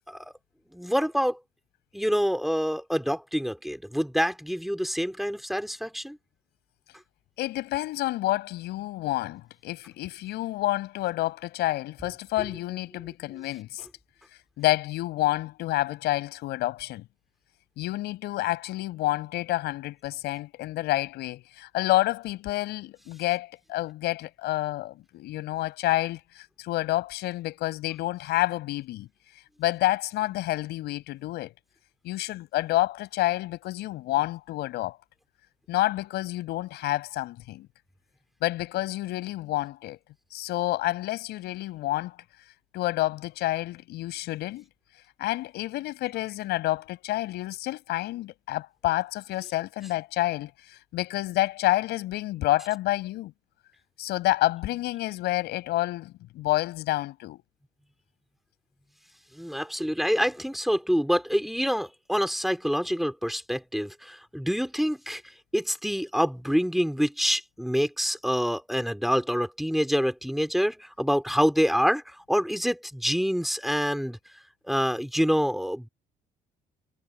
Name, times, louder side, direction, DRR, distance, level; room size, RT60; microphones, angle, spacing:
voice 1, 0.7-1.4 1.9-6.2 12.4-12.5 59.4-65.2 65.5-74.2 74.6-75.9, equal, ahead, 3.1 m, -26 dB
voice 2, 7.4-13.9 14.6-17.0 17.8-29.1 29.6-31.5 32.0-35.0 35.7-37.7 38.4-40.0 40.3-42.1 42.7-44.6 45.2-50.5 50.9-53.3 54.0-57.4, left 16 dB, 80° left, 6.5 m, -29 dB
cardioid pair, 110°, 17 cm